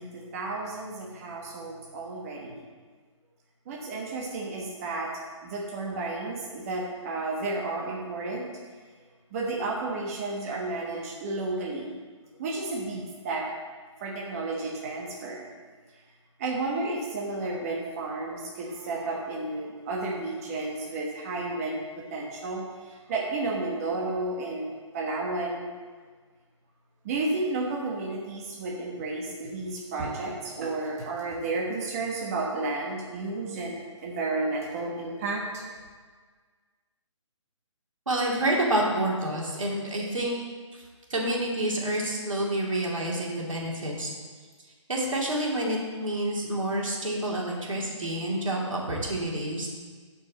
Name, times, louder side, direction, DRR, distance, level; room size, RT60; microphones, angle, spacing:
voice 1, 0.0-2.6 3.7-5.1 5.4-8.5 9.3-12.0 12.4-13.4 14.0-15.5 16.4-25.7 27.0-35.7, right 2 dB, 30° right, -3 dB, 1.3 m, -32 dB
voice 2, 38.1-40.4 40.7-40.8 41.1-44.1 44.9-49.7, right 1 dB, 85° right, -2 dB, 2.6 m, -28 dB
12.0 x 5.5 x 4.2 m, 1.5 s
hypercardioid pair, 155°, 16 cm